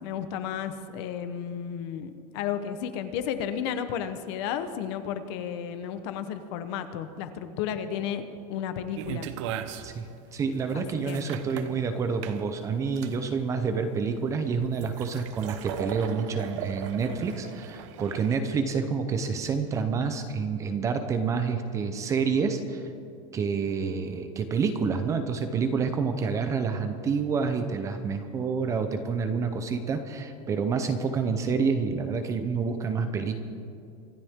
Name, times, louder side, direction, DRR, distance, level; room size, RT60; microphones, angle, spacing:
voice 1, 0.0-8.2 8.5-9.3 10.7-11.3, left 8 dB, 45° left, 10 dB, 1.0 m, -33 dB
sound 1, 9.0-18.4, right 9 dB, 55° right, 0.9 m, -39 dB
voice 2, 10.3-22.8 23.3-33.3, right 5 dB, 15° right, 8 dB, 0.7 m, -28 dB
25.5 x 12.0 x 3.7 m, 2.5 s
supercardioid pair, 175°, 18 cm